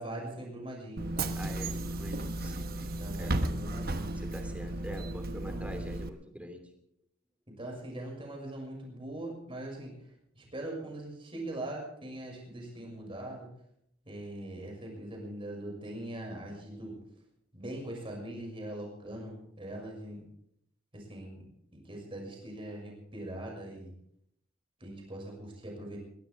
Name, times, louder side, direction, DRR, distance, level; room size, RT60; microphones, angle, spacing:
voice 1, 0.0-1.4 3.0-4.2 5.2-5.7 7.5-13.5 14.0-17.0 17.5-20.3 20.9-21.5 21.8-23.9 24.8-26.0, right 1 dB, 25° right, 0 dB, 6.3 m, -41 dB
Bus / Engine, 1.0-6.1, right 2 dB, 50° right, 1.1 m, -34 dB
voice 2, 1.4-3.3 4.2-6.7, equal, 5° right, 5 dB, 2.9 m, -45 dB
22.0 x 17.0 x 3.5 m, 0.71 s
head